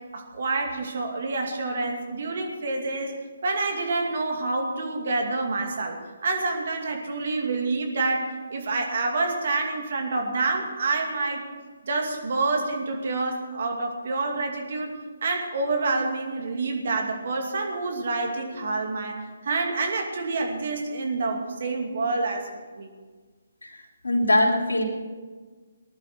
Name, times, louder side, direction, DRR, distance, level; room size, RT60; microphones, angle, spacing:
voice 1, 0.0-3.1 3.4-11.5 11.8-14.9 15.2-22.9, right 3 dB, 55° right, 2 dB, 2.5 m, -28 dB
voice 2, 24.0-24.8, left 1 dB, 80° left, -2 dB, 3.6 m, -21 dB
19.5 x 11.5 x 4.6 m, 1.4 s
figure-of-eight pair, 140°, 0 cm